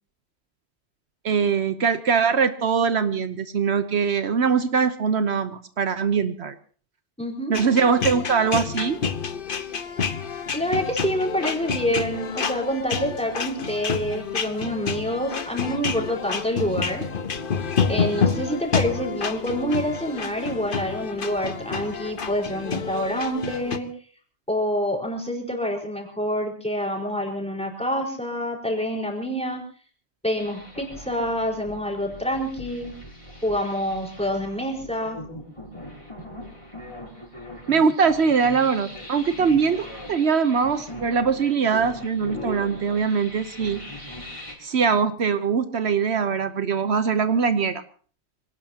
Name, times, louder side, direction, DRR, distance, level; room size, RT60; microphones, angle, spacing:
voice 1, 1.2-6.6 7.5-9.0 37.7-43.8 44.6-47.8, right 6 dB, 75° right, 10 dB, 1.2 m, -22 dB
voice 2, 7.2-7.5 10.5-17.0 17.9-23.9 24.5-29.6 30.2-32.9 33.4-35.2 41.7-41.8 42.2-42.8, equal, 5° left, 0 dB, 4.6 m, -27 dB
sound 1, 7.5-23.8, left 5 dB, 55° left, 1.2 m, -28 dB
sound 2, 30.4-44.5, left 1 dB, 30° left, 4.7 m, -40 dB
26.5 x 18.0 x 2.9 m, 0.43 s
omnidirectional pair, 1.1 m